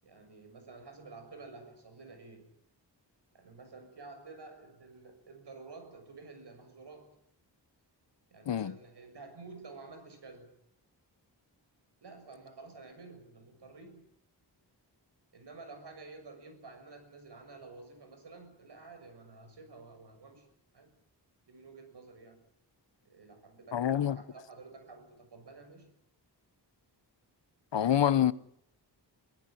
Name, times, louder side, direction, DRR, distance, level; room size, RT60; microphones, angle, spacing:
voice 1, 0.0-2.5 3.3-7.2 8.3-10.5 12.0-14.0 15.3-20.5 20.7-20.9 21.5-22.4 23.0-25.9, right 3 dB, 70° right, 6.9 m, -51 dB
voice 2, 23.7-24.2 27.7-28.3, left 10 dB, 80° left, 1.0 m, -26 dB
25.0 x 16.5 x 9.4 m
wide cardioid pair, 145°, 43 cm